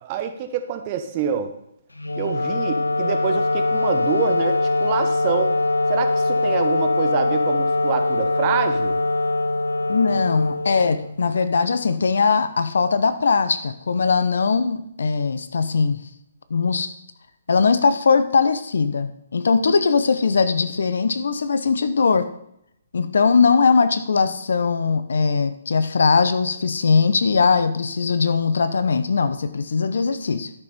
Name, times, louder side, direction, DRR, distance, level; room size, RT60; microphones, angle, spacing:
voice 1, 0.0-1.5 2.2-5.6 5.9-8.9, right 8 dB, 35° right, 7 dB, 1.2 m, -26 dB
Wind instrument woodwind instrument, 2.0-11.3, left 2 dB, 85° left, 0.6 m, -22 dB
voice 2, 9.9-16.0 16.5-16.9 17.5-22.3 22.9-30.5, left 5 dB, 65° left, 12 dB, 0.9 m, -20 dB
12.5 x 6.9 x 4.4 m, 0.77 s
figure-of-eight pair, 135°, 0 cm